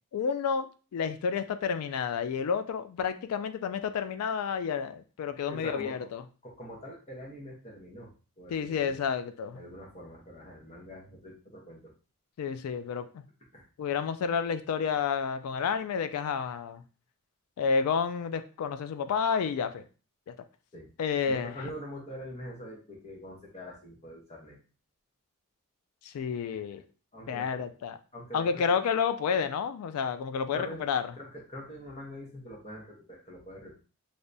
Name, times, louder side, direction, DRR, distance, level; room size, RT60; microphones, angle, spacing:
voice 1, 0.1-6.2 8.5-9.6 12.4-13.2 13.8-16.8 17.6-19.9 20.3-20.4 21.0-21.6 26.0-26.8 27.3-28.0 28.3-31.0, left 6 dB, 80° left, 12 dB, 0.3 m, -30 dB
voice 2, 5.5-5.9 6.4-8.9 9.5-11.9 13.5-13.7 20.7-20.9 21.2-24.6 27.1-27.6 28.1-28.8 30.5-30.9 31.2-33.7, equal, 30° left, -1 dB, 0.9 m, -44 dB
3.3 x 2.7 x 2.6 m, 0.35 s
head